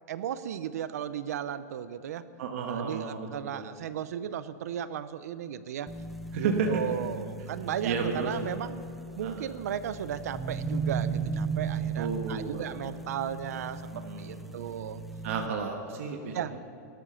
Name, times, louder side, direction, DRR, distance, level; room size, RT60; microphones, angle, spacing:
voice 1, 0.1-2.2 2.7-5.9 6.3-8.8 9.2-15.0 16.3-16.5, right 9 dB, 70° right, 14 dB, 0.7 m, -35 dB
voice 2, 2.4-3.7 6.3-6.8 7.8-8.5 9.2-9.5 12.0-12.8 13.9-14.8 15.2-16.7, right 5 dB, 50° right, 3 dB, 1.4 m, -33 dB
sound 1, 5.9-15.5, right 5 dB, ahead, 0.5 m, -36 dB
18.0 x 12.5 x 5.7 m, 2.7 s
supercardioid pair, 175°, 9 cm